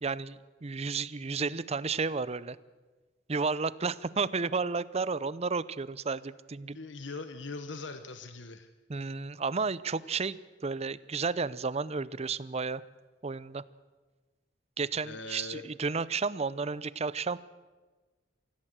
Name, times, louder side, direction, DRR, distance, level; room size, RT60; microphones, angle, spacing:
voice 1, 0.0-2.6 3.3-6.8 8.9-12.8 13.2-13.6 14.8-17.4, right 4 dB, 35° right, 18 dB, 0.6 m, -32 dB
voice 2, 6.7-8.7 15.0-15.7, left 3 dB, 80° left, 9 dB, 1.1 m, -41 dB
25.0 x 16.0 x 7.5 m, 1.3 s
head